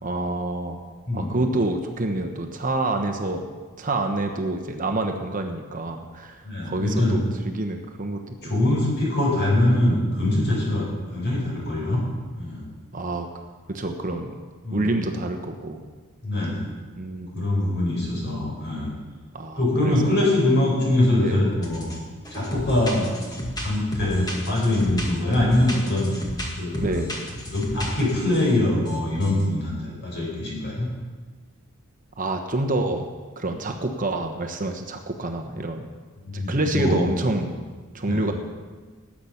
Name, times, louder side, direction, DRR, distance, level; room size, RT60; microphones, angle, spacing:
voice 1, 0.0-0.8 1.1-3.5 3.8-6.4 6.6-8.5 12.9-13.3 13.7-14.4 14.7-15.8 17.0-17.5 19.3-20.0 21.2-21.4 26.7-27.1 32.2-33.1 33.4-35.9 36.3-37.5 37.9-38.3, right 2 dB, 40° right, 4 dB, 1.1 m, -27 dB
voice 2, 1.1-1.4 6.4-7.2 8.4-12.0 12.4-12.7 14.6-15.1 16.2-16.7 17.3-18.9 19.5-21.9 22.3-23.1 23.5-26.1 26.6-27.0 27.5-30.9 36.2-37.0 38.1-38.3, left 1 dB, 50° left, -3 dB, 5.7 m, -23 dB
sound 1, 21.6-22.0 22.2-28.5 28.9-29.0 29.2-29.4, equal, 20° left, 1.9 m, -33 dB
19.0 x 8.5 x 5.9 m, 1.4 s
head